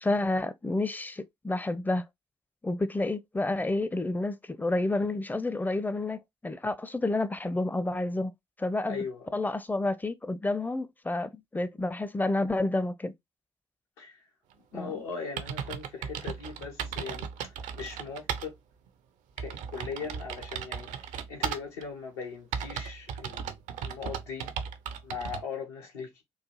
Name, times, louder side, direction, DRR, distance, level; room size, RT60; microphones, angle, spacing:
voice 1, 0.0-2.0 2.6-8.3 8.6-9.0 9.3-13.1 14.7-14.9, left 2 dB, 10° left, 0.5 m, -29 dB
voice 2, 8.9-9.3 14.0-14.2 14.5-18.5 19.4-24.5 25.0-26.2, left 5 dB, 75° left, 1.0 m, -39 dB
sound 1, 14.9-15.0 15.4-18.5 18.9-19.0 19.4-21.8 22.5-25.4, right 7 dB, 60° right, 0.5 m, -36 dB
3.9 x 2.3 x 2.9 m
figure-of-eight pair, 40°, 14 cm